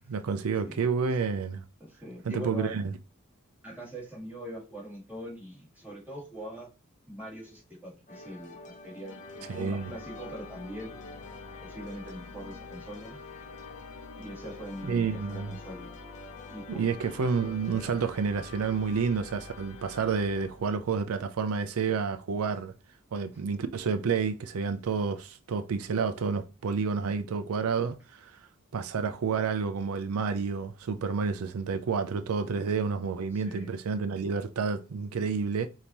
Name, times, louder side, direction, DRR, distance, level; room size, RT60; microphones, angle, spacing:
voice 1, 0.0-1.6 2.2-2.9 9.5-9.9 14.8-15.5 16.8-22.7 23.1-28.4 28.7-35.7, right 5 dB, 80° right, 0.4 m, -29 dB
voice 2, 1.8-2.7 3.6-6.7 7.1-11.0 11.6-13.2 14.1-15.9 16.5-16.9 33.3-33.7, equal, 10° right, 2.2 m, -42 dB
sound 1, 8.1-17.9, left 3 dB, 35° left, 0.8 m, -48 dB
sound 2, 9.0-21.0, left 4 dB, 70° left, 0.5 m, -47 dB
5.1 x 2.8 x 2.9 m
head